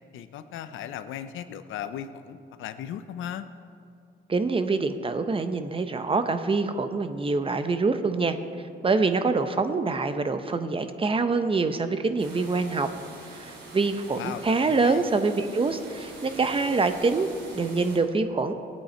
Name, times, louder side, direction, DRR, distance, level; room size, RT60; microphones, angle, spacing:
voice 1, 0.1-3.5 14.1-15.1, left 9 dB, 80° left, 11 dB, 0.7 m, -37 dB
voice 2, 4.3-8.4 8.8-12.9 13.3-18.5, right 3 dB, 25° right, 9 dB, 0.8 m, -25 dB
sound 1, 12.2-18.0, right 2 dB, 70° right, 3.1 m, -44 dB
17.5 x 8.7 x 4.4 m, 2.5 s
cardioid pair, 90°, 20 cm